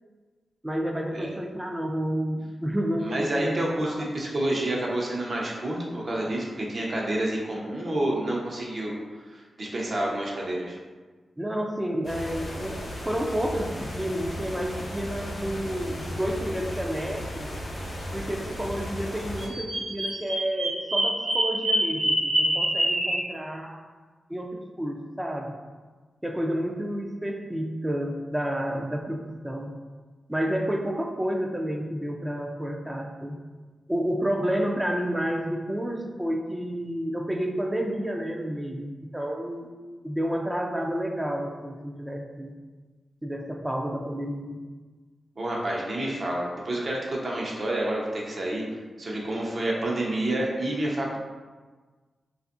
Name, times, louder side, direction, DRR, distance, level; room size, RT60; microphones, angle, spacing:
voice 1, 0.6-3.5 3.8-4.0 11.4-17.5 18.1-23.8 24.3-25.6 26.2-29.8 30.3-33.4 33.9-39.7 40.0-42.5 43.2-44.7, equal, 15° right, 1 dB, 0.3 m, -30 dB
voice 2, 3.0-9.0 9.3-10.8 45.4-48.6 49.0-51.2, right 1 dB, 55° right, -3 dB, 0.6 m, -29 dB
sound 1, 12.0-19.5, equal, 65° left, 0.6 m, -35 dB
Bird vocalization bird call bird song, 19.4-23.2, right 1 dB, 85° right, 0.8 m, -25 dB
2.5 x 2.4 x 2.4 m, 1.4 s
cardioid pair, 45°, 0 cm